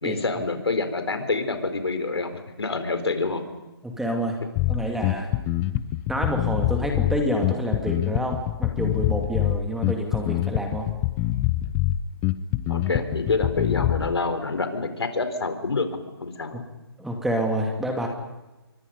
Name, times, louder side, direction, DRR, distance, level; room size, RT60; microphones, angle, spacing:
voice 1, 0.0-3.5 12.7-16.6, left 3 dB, 85° left, 8 dB, 4.3 m, -27 dB
voice 2, 3.8-4.4 4.7-5.3 6.1-10.9 17.0-18.1, equal, ahead, 2 dB, 2.3 m, -28 dB
Bass guitar, 4.6-14.1, left 14 dB, 15° left, 0.7 m, -25 dB
28.5 x 24.5 x 5.4 m, 1.1 s
hypercardioid pair, 155°, 13 cm